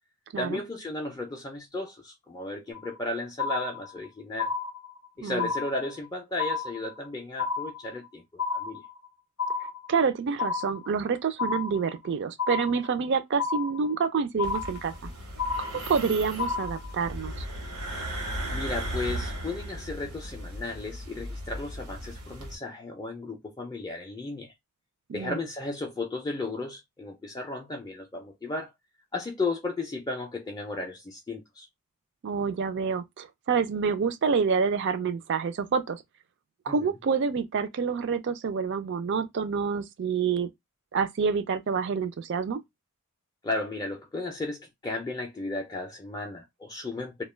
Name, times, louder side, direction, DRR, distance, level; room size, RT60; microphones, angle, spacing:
voice 1, 0.4-4.5 5.2-8.8 15.7-15.8 18.5-24.5 25.1-28.7 29.1-31.7 36.7-36.8 43.4-47.2, left 2 dB, 15° left, 0.4 m, -34 dB
sound 1, 2.7-3.1 3.4-4.1 4.4-5.1 5.4-6.1 6.4-7.1 7.4-8.1 8.4-9.1 9.4-10.1 10.4-11.1 11.4-12.1 12.4-13.1 13.4-14.1 14.4-15.1 15.4-16.1 16.4-17.1, left 4 dB, 80° left, 0.5 m, -32 dB
voice 2, 9.9-14.9 15.6-17.3 25.1-25.4 32.2-36.0 36.7-40.5 40.9-42.6, right 5 dB, 55° right, 0.4 m, -27 dB
sound 2, 14.4-22.6, right 1 dB, 85° right, 0.9 m, -36 dB
2.2 x 2.2 x 3.1 m
head